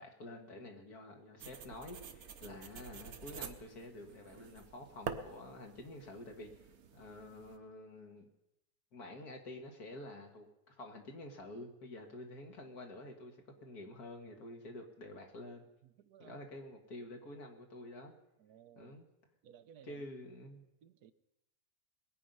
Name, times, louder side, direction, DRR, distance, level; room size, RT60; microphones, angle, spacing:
voice 1, 0.0-6.5 6.9-8.3 8.9-15.7 16.2-18.1 18.8-19.1 19.8-20.6, left 1 dB, 75° left, 2.4 m, -49 dB
sound 1, 1.4-7.6, right 6 dB, 70° right, 1.3 m, -48 dB
voice 2, 15.8-16.5 18.4-19.0 19.4-20.0 20.8-21.1, right 9 dB, 85° right, 1.3 m, -58 dB
21.0 x 9.2 x 5.5 m
omnidirectional pair, 1.6 m